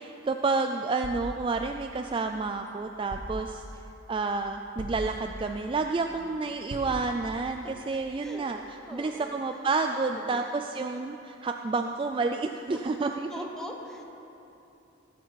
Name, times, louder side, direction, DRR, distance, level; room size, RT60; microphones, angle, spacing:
voice 1, 0.0-3.6 4.1-8.6 8.9-13.3, right 3 dB, 25° right, 5 dB, 0.3 m, -30 dB
sound 1, 1.0-2.4 3.1-3.9 4.8-5.7 6.7-7.5, equal, 85° right, 1.1 m, -41 dB
voice 2, 8.9-9.3 9.9-10.6 13.3-14.1, equal, 5° left, 1 dB, 1.1 m, -42 dB
19.0 x 8.1 x 4.7 m, 2.9 s
head